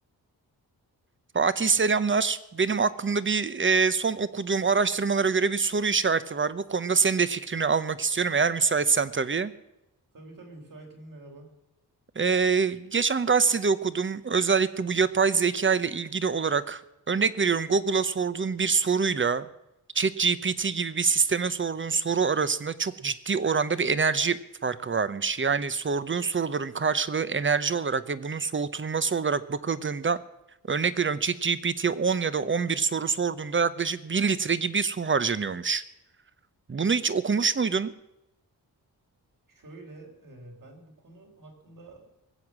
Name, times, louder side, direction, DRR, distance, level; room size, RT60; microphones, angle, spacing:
voice 1, 1.3-9.5 12.2-16.8 17.1-19.5 19.9-30.2 30.7-35.8 36.7-37.9, right 5 dB, 30° right, 15 dB, 0.8 m, -25 dB
voice 2, 10.1-11.6 39.5-42.1, right 2 dB, 55° right, 1 dB, 3.9 m, -48 dB
20.0 x 8.0 x 7.4 m, 0.89 s
wide cardioid pair, 90°, 38 cm